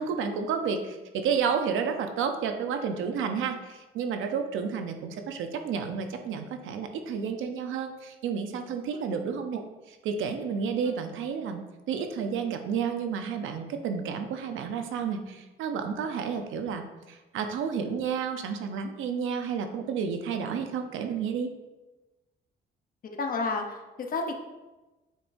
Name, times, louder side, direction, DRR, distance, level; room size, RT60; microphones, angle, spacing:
voice 1, 0.0-21.5, right 6 dB, 85° right, 6 dB, 0.8 m, -31 dB
voice 2, 23.2-24.3, left 3 dB, 45° left, 3 dB, 0.9 m, -30 dB
7.4 x 5.2 x 2.7 m, 1.1 s
cardioid pair, 90°, 20 cm